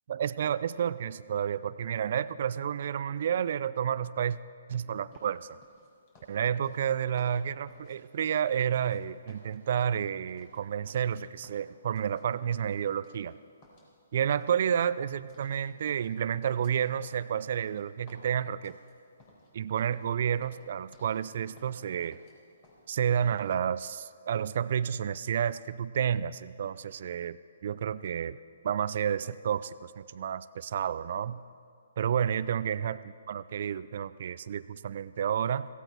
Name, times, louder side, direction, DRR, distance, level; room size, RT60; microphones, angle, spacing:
voice 1, 0.1-4.4 4.7-5.6 6.3-13.3 14.1-18.8 19.5-22.2 22.9-27.4 27.6-28.4 28.6-31.4 32.0-35.7, right 8 dB, 55° right, 17 dB, 0.4 m, -30 dB
sound 1, 5.1-9.0 9.3-11.2 11.4-12.2 12.5-13.3 13.6-15.6 15.9-19.5 19.8-20.0 20.3-21.2 21.5-22.3 22.6-22.8, left 1 dB, 35° left, 4.2 m, -59 dB
16.5 x 16.0 x 4.5 m, 2.4 s
figure-of-eight pair, 130°, 0 cm